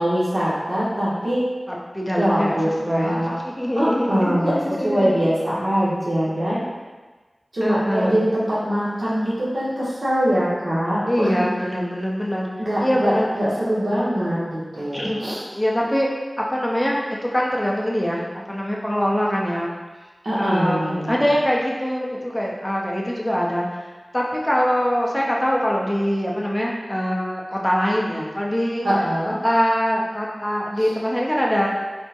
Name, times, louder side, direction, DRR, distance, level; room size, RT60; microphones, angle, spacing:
voice 1, 0.0-1.4 2.2-3.3 3.8-4.5 4.8-6.6 7.5-11.4 12.6-15.4 20.2-21.2 28.8-29.3 30.8-30.9, equal, 80° right, -9 dB, 0.9 m, -22 dB
voice 2, 1.7-5.2 7.6-8.3 9.3-9.4 11.1-12.5 12.8-13.3 14.9-15.2 15.5-16.1 16.4-19.7 20.4-23.7 24.1-28.9 29.2-31.7, equal, 15° left, -3 dB, 0.5 m, -23 dB
3.5 x 2.0 x 2.7 m, 1.3 s
wide cardioid pair, 50°, 0 cm